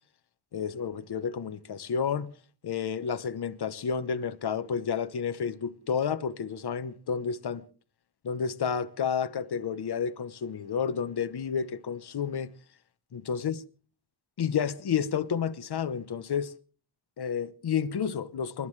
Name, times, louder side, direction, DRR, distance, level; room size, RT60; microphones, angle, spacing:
voice 1, 0.5-2.3 2.6-7.6 8.2-12.5 13.1-13.5 14.4-16.5 17.2-18.7, left 7 dB, 55° left, 1.0 m, -30 dB
28.0 x 12.5 x 3.2 m
wide cardioid pair, 155°, 48 cm